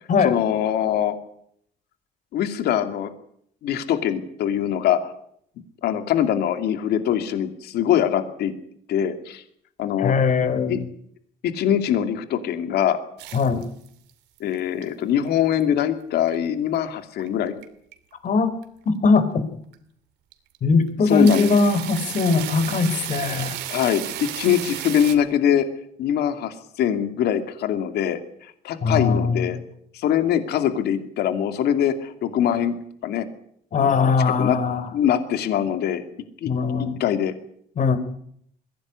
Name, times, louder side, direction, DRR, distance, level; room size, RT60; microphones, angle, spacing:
voice 1, 0.2-1.2 2.3-3.1 3.6-5.0 5.8-8.5 8.9-9.4 9.8-10.1 10.7-10.8 11.4-13.0 14.4-17.6 21.1-21.5 23.7-25.7 26.0-28.2 28.6-29.6 29.9-32.7 33.0-33.3 33.8-34.6 34.9-36.0 36.4-36.5 36.8-37.3, left 10 dB, 75° left, 9 dB, 2.6 m, -23 dB
voice 2, 10.0-10.8 13.3-13.6 18.2-18.5 18.9-19.5 20.6-23.6 28.8-29.5 33.7-34.9 36.5-37.0 37.8-38.0, left 4 dB, 50° left, 12 dB, 3.7 m, -20 dB
sound 1, 13.2-14.1 14.4-14.8 15.3-15.9 16.3-16.4 17.2-17.6 17.9-18.1 18.6-18.7 19.2-19.3 19.7-19.8 20.3-20.6 20.9-25.1, right 13 dB, 85° right, 2.7 m, -33 dB
22.0 x 17.0 x 9.8 m, 0.68 s
cardioid pair, 110°, 17 cm